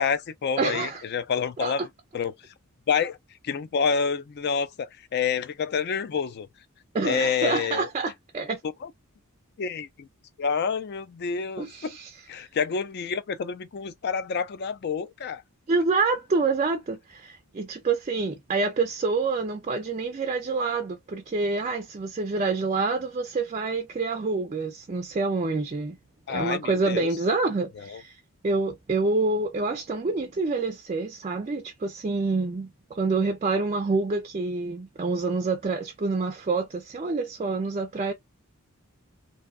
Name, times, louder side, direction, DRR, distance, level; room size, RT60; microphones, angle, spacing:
voice 1, 0.0-1.9 2.1-2.4 2.9-3.2 3.4-6.5 7.0-7.9 8.8-8.9 9.6-10.1 10.4-12.0 12.3-15.4 26.3-27.1 27.8-28.0, left 6 dB, 45° left, 0.4 m, -28 dB
voice 2, 0.6-1.0 1.6-1.7 6.9-8.6 11.6-12.1 15.7-26.0 26.3-38.1, right 3 dB, 30° right, 0.4 m, -27 dB
2.6 x 2.2 x 2.3 m
head